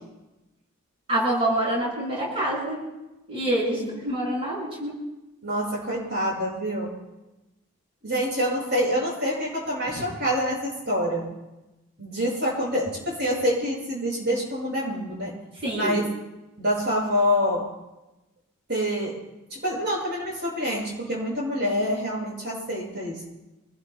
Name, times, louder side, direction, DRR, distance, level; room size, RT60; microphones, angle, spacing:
voice 1, 1.1-2.8 3.3-5.0 9.9-10.0 15.6-16.0, right 1 dB, 25° right, -6 dB, 7.3 m, -26 dB
voice 2, 5.4-6.9 8.0-11.3 12.0-15.3 15.7-16.1 16.6-17.7 18.7-19.1 19.5-23.3, equal, 50° right, -4 dB, 7.0 m, -26 dB
26.5 x 20.5 x 2.4 m, 1.0 s
head